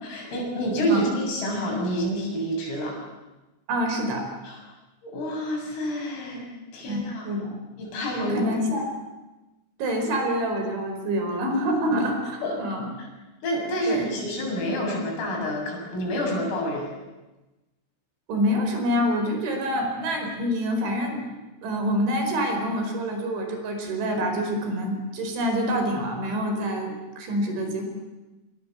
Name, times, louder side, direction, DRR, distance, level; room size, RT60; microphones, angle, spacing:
voice 1, 0.0-3.0 4.4-4.6 5.0-6.5 6.7-7.2 7.8-8.5 12.4-12.6 13.0-13.1 13.4-16.9, equal, 85° left, 0 dB, 9.8 m, -28 dB
voice 2, 3.7-4.3 6.9-7.5 8.2-8.8 9.8-12.9 13.9-14.0 18.3-21.2 21.6-27.8, equal, 65° right, 4 dB, 7.0 m, -26 dB
26.5 x 26.0 x 8.0 m, 1.1 s
omnidirectional pair, 5.8 m